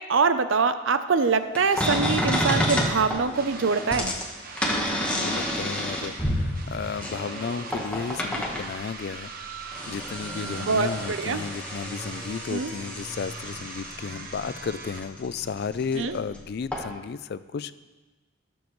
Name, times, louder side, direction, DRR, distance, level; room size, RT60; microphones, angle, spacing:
voice 1, 0.0-4.1 5.0-5.2 10.4-11.5 12.5-12.7 15.9-16.2, right 5 dB, 65° right, 11 dB, 0.6 m, -24 dB
sound 1, 1.5-8.8 9.4-16.4 16.7-16.9, equal, 5° left, 1.3 m, -30 dB
sound 2, 1.7-15.0, right 4 dB, 45° right, 1.1 m, -41 dB
voice 2, 4.7-9.6 9.9-17.7, left 5 dB, 50° left, 15 dB, 0.3 m, -34 dB
19.0 x 7.2 x 3.1 m, 1.2 s
head